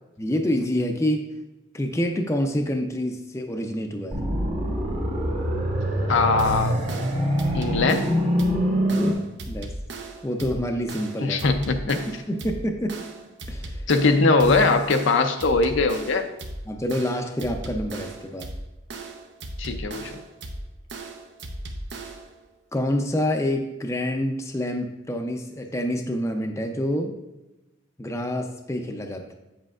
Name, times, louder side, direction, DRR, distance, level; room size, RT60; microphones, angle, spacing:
voice 1, 0.2-1.3 1.7-4.2 8.9-9.7 10.2-11.5 12.3-13.0 13.5-13.8 16.7-18.5 22.7-27.2 28.0-29.3, left 1 dB, 15° left, 3 dB, 0.5 m, -27 dB
sound 1, 4.1-9.1, equal, 30° right, 1.1 m, -24 dB
voice 2, 6.1-6.8 7.5-8.1 11.2-12.0 13.9-16.3 19.6-20.2, left 3 dB, 60° left, 6 dB, 0.6 m, -21 dB
sound 2, 6.4-22.4, right 2 dB, 55° right, 0.7 m, -37 dB
8.3 x 7.6 x 2.4 m, 0.99 s
head